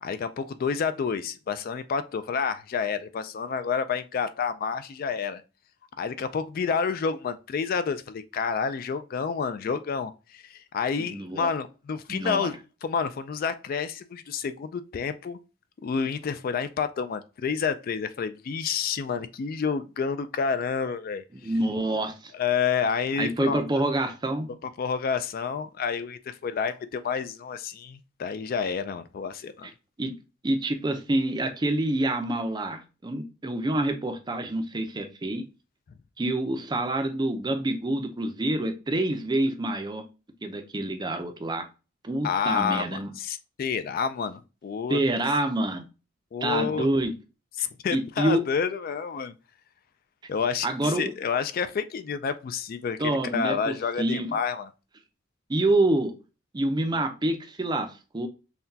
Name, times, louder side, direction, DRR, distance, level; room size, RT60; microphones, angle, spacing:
voice 1, 0.0-5.4 6.0-15.4 15.8-21.2 22.3-23.6 24.8-29.7 42.2-45.0 46.3-46.9 47.6-49.3 50.3-54.7, left 6 dB, 45° left, 0.3 m, -29 dB
voice 2, 11.0-11.5 12.1-12.5 21.3-22.3 23.2-24.5 29.6-29.7 30.0-30.1 30.4-35.4 36.2-40.0 40.4-41.7 42.0-43.1 44.9-45.9 46.4-47.1 47.6-48.4 50.6-51.1 53.0-54.4 55.5-56.1 56.5-58.3, right 1 dB, 20° right, 0.5 m, -27 dB
5.7 x 2.2 x 2.7 m
head